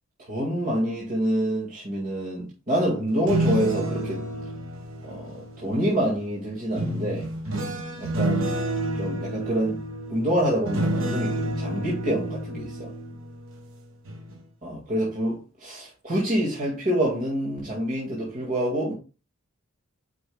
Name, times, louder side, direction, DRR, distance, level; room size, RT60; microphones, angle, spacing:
voice 1, 0.2-4.3 5.0-7.3 8.0-8.6 8.9-9.8 10.1-12.9 14.6-18.9, right 1 dB, 40° right, 2.0 m, -27 dB
sound 1, 3.1-6.0 6.8-13.7 14.1-14.4, right 1 dB, 70° right, 1.3 m, -29 dB
8.5 x 5.3 x 2.3 m
head